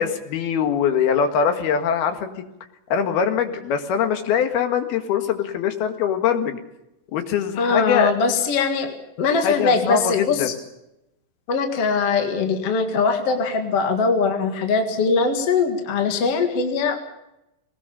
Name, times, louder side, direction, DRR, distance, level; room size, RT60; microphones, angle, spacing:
voice 1, 0.0-2.3 2.9-6.6 7.1-8.1 9.4-10.5, left 7 dB, 80° left, 7 dB, 3.7 m, -22 dB
voice 2, 7.6-10.5 11.5-17.0, left 4 dB, 45° left, 5 dB, 2.4 m, -21 dB
20.5 x 19.5 x 7.1 m, 0.89 s
omnidirectional pair, 4.5 m